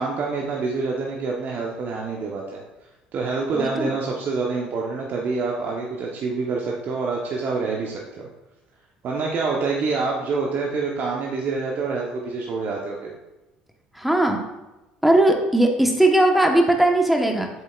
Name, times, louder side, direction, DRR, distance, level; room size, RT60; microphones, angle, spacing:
voice 1, 0.0-2.6 3.1-8.3 9.0-13.1, right 4 dB, 50° right, -1 dB, 1.0 m, -26 dB
voice 2, 3.5-3.9 13.9-14.4 15.0-17.5, right 1 dB, 5° right, 2 dB, 1.2 m, -18 dB
7.7 x 7.2 x 2.5 m, 1.0 s
hypercardioid pair, 65°, 4 cm